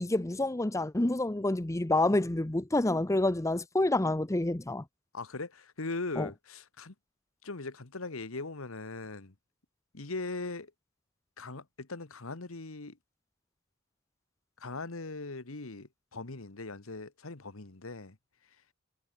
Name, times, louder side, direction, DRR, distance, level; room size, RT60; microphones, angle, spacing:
voice 1, 0.0-4.8 6.2-6.3, left 2 dB, 15° left, 0.7 m, -28 dB
voice 2, 5.1-6.9 7.4-9.3 9.9-10.7 11.4-13.0 14.6-18.2, left 3 dB, 75° left, 1.6 m, -40 dB
head